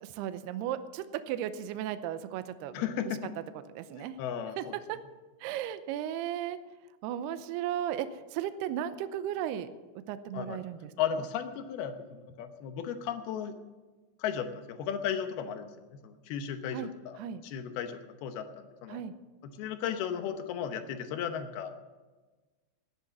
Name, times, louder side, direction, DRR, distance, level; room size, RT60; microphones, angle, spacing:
voice 1, 0.0-2.8 3.8-4.2 4.6-5.0 5.4-6.6 7.0-9.7 10.1-10.9 16.7-16.9 17.2-17.4 18.9-19.1, right 11 dB, 80° right, 11 dB, 2.4 m, -35 dB
voice 2, 2.7-3.2 3.9-4.8 10.3-10.6 11.0-13.5 14.2-19.0 19.4-21.7, left 8 dB, 75° left, 8 dB, 2.5 m, -35 dB
13.5 x 10.5 x 7.2 m, 1.3 s
omnidirectional pair, 5.4 m